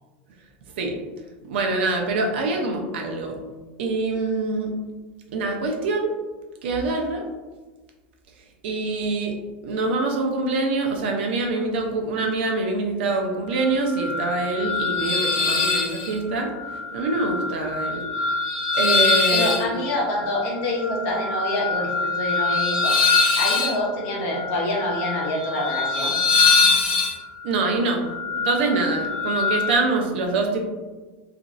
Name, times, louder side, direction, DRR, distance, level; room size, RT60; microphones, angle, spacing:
voice 1, 1.4-3.4 3.8-4.7 5.3-6.2 6.6-7.2 8.6-9.3 9.6-16.5 16.9-18.0 18.7-19.7 27.4-28.1 28.4-30.6, right 3 dB, 85° right, 2 dB, 0.6 m, -25 dB
sound 1, 13.6-29.7, left 4 dB, 75° left, 0.8 m, -24 dB
voice 2, 19.3-23.0 23.4-26.1, left 1 dB, 45° left, -2 dB, 0.7 m, -26 dB
3.0 x 2.5 x 2.5 m, 1.3 s
supercardioid pair, 175°, 6 cm